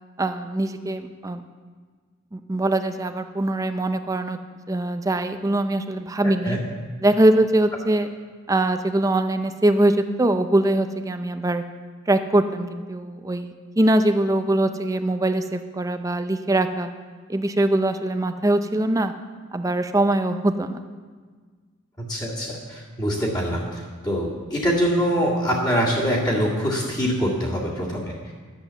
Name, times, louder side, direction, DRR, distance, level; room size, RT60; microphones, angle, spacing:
voice 1, 0.2-1.4 2.3-4.4 4.7-6.6 7.0-8.1 8.5-11.6 12.1-16.9 17.3-19.1 19.5-20.8, right 1 dB, 15° right, 9 dB, 0.4 m, -22 dB
voice 2, 6.2-6.6 22.0-28.3, equal, 20° left, -6 dB, 2.0 m, -24 dB
10.5 x 7.7 x 6.9 m, 1.5 s
head